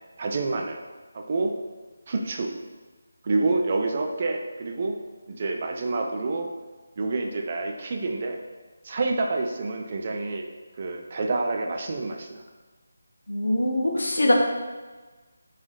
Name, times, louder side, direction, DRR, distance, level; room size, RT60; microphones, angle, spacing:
voice 1, 0.2-0.8 1.1-1.5 2.1-2.5 3.2-5.0 5.3-6.5 7.0-8.4 8.8-10.5 10.8-12.4, right 3 dB, 40° right, 3 dB, 0.3 m, -28 dB
voice 2, 13.3-14.3, left 1 dB, 65° left, 0 dB, 0.6 m, -23 dB
3.1 x 3.1 x 2.5 m, 1.3 s
figure-of-eight pair, 155°, 0 cm